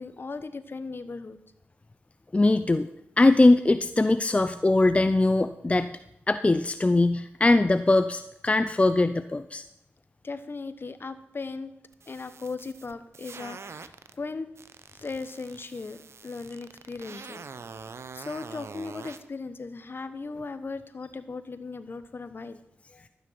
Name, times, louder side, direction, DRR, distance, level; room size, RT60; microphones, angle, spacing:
voice 1, 0.0-1.4 10.2-11.7 12.1-14.5 15.0-17.5 17.8-22.6 22.9-23.0, left 4 dB, 50° left, 12 dB, 1.1 m, -38 dB
voice 2, 2.3-2.9 3.2-5.9 6.3-9.6, left 2 dB, 25° left, 11 dB, 0.6 m, -21 dB
sound 1, 11.9-14.1 14.5-19.2, right 5 dB, 65° right, 0.8 m, -44 dB
12.5 x 9.5 x 5.8 m, 0.82 s
cardioid pair, 45°, 5 cm